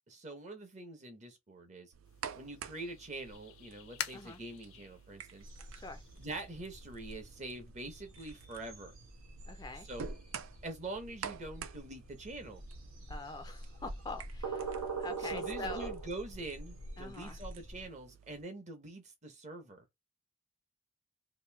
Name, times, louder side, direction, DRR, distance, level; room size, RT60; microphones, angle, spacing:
voice 1, 0.1-1.9 2.3-5.4 6.2-8.9 9.7-10.1 10.6-12.6 15.2-19.8, right 2 dB, 35° right, 0.8 m, -45 dB
sound 1, 1.9-18.4, right 7 dB, 75° right, 0.4 m, -51 dB
sound 2, 2.1-7.3, left 10 dB, 75° left, 0.6 m, -48 dB
sound 3, 5.4-17.8, right 3 dB, 90° right, 1.3 m, -44 dB
voice 2, 9.5-9.9 13.1-14.7 15.0-15.9 17.0-17.4, left 3 dB, 20° left, 0.4 m, -44 dB
3.0 x 2.6 x 3.3 m
head